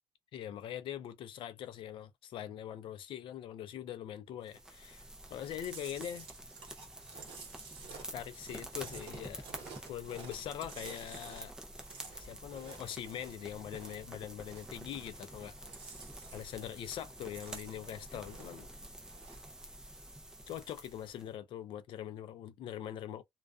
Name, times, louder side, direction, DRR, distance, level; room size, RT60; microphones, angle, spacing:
voice 1, 0.3-6.3 8.1-9.5 9.9-11.5 12.1-15.6 15.9-16.0 16.3-18.7 20.5-23.2, left 10 dB, 55° left, 0.4 m, -43 dB
sound 1, 4.5-21.3, right 1 dB, 5° right, 0.5 m, -49 dB
Chewing mastication, 5.6-14.1 14.4-15.3 15.6-16.7 17.0-18.7 19.0-19.5, right 5 dB, 55° right, 1.0 m, -51 dB
2.3 x 2.3 x 2.3 m
cardioid pair, 165°, 11 cm